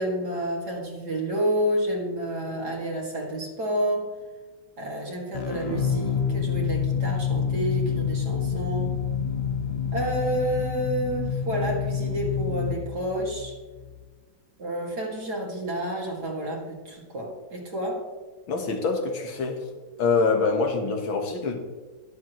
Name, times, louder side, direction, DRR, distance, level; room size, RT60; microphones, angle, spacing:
voice 1, 0.0-4.1 4.8-9.0 9.9-13.6 14.6-18.0, right 1 dB, 55° right, -1 dB, 2.8 m, -29 dB
sound 1, 5.3-14.0, left 7 dB, 50° left, 0.7 m, -28 dB
voice 2, 18.5-19.6 20.0-21.6, left 4 dB, 80° left, 3 dB, 2.2 m, -25 dB
20.5 x 7.3 x 3.1 m, 1.3 s
omnidirectional pair, 2.1 m